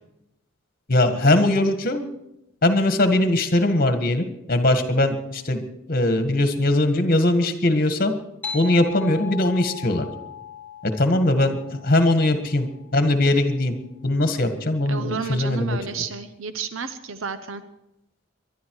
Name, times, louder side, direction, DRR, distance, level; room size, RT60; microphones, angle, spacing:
voice 1, 0.9-2.0 2.6-5.6 5.9-8.1 8.5-10.1 10.8-11.6 11.8-12.7 12.9-13.8 14.0-15.8, left 1 dB, 45° left, 8 dB, 1.7 m, -20 dB
sound 1, 8.4-13.4, left 6 dB, 10° left, 2.0 m, -38 dB
voice 2, 14.9-17.6, right 5 dB, 85° right, 11 dB, 0.8 m, -31 dB
23.0 x 11.5 x 4.8 m, 0.90 s
head